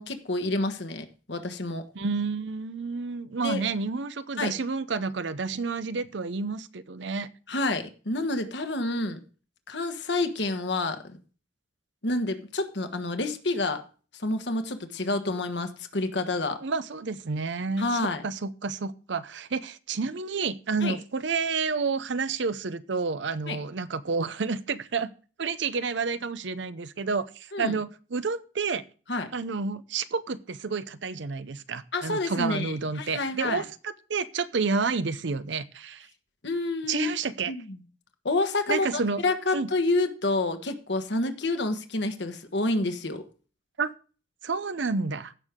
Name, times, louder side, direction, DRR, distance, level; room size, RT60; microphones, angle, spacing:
voice 1, 0.0-1.8 3.4-3.6 4.4-4.5 7.5-9.2 9.7-11.2 12.0-13.8 14.1-16.6 17.8-18.2 20.8-21.0 23.5-23.6 27.5-27.8 29.1-29.3 31.9-33.6 36.4-37.1 37.5-37.8 38.2-43.2, left 2 dB, 60° left, 7 dB, 1.4 m, -28 dB
voice 2, 2.0-7.3 16.6-25.1 25.4-28.8 29.3-36.1 36.9-37.5 38.7-39.2 39.5-39.7 43.8-43.9 44.4-45.3, right 4 dB, 65° right, 14 dB, 0.7 m, -30 dB
15.5 x 6.4 x 3.6 m, 0.38 s
head